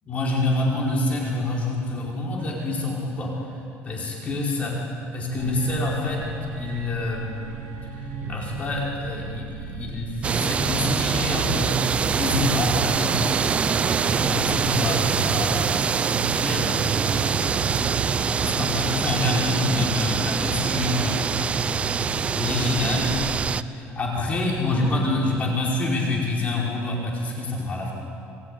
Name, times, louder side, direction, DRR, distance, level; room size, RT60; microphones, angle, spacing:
voice 1, 0.0-3.5 3.8-4.8 5.1-6.2 6.6-7.3 8.3-13.2 14.0-15.7 16.0-21.5 22.3-23.1 23.7-27.9, left 2 dB, 30° left, -2 dB, 4.9 m, -27 dB
sound 1, 5.3-23.1, right 3 dB, 85° right, 5.4 m, -36 dB
sound 2, 10.2-23.6, right 6 dB, 25° right, 0.6 m, -24 dB
28.0 x 20.0 x 9.9 m, 2.7 s
cardioid pair, 165°, 5 cm